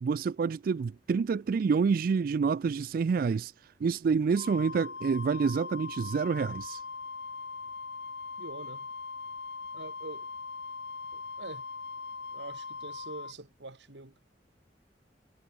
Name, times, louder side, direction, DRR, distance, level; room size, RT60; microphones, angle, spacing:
voice 1, 0.0-6.8, right 5 dB, 55° right, 0.3 m, -28 dB
Wind instrument woodwind instrument, 4.4-13.3, left 4 dB, 75° left, 1.9 m, -41 dB
voice 2, 8.4-8.9 9.7-10.3 11.1-11.7 12.3-14.2, right 2 dB, 90° right, 2.5 m, -45 dB
head